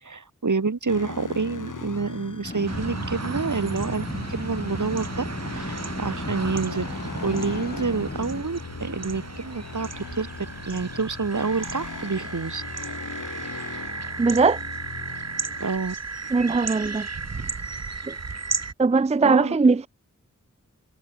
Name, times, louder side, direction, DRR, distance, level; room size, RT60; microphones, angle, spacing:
voice 1, 0.0-5.2 5.5-6.9 7.2-10.3 10.7-12.6 15.6-15.9 19.2-19.5, right 4 dB, 75° right, 2.8 m, -28 dB
sound 1, 0.9-15.7, left 4 dB, 85° left, 2.7 m, -39 dB
sound 2, 2.4-8.4, left 2 dB, 30° left, 3.3 m, -36 dB
sound 3, 2.7-18.7, right 4 dB, 55° right, 1.8 m, -35 dB
voice 2, 14.2-14.6 16.3-17.1 18.1-18.2 18.8-19.9, right 4 dB, 20° right, 0.4 m, -20 dB
wide cardioid pair, 70°, 30 cm